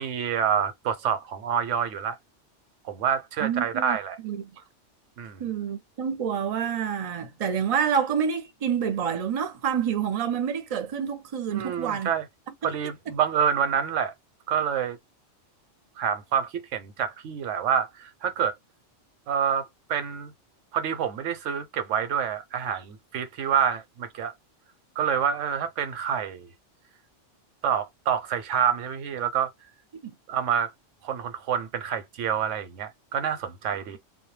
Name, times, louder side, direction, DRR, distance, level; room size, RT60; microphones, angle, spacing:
voice 1, 0.0-2.2 2.8-4.2 5.2-5.4 11.5-12.3 12.6-14.1 14.5-15.0 16.0-18.5 19.3-20.3 20.7-24.3 25.0-26.5 27.6-29.5 30.3-30.7 31.0-34.0, right 8 dB, 90° right, 0.9 m, -27 dB
voice 2, 3.4-4.0 4.2-4.4 5.4-12.1 13.1-13.2 30.0-30.1, right 7 dB, 40° right, 0.5 m, -28 dB
2.2 x 2.1 x 3.1 m
omnidirectional pair, 1.2 m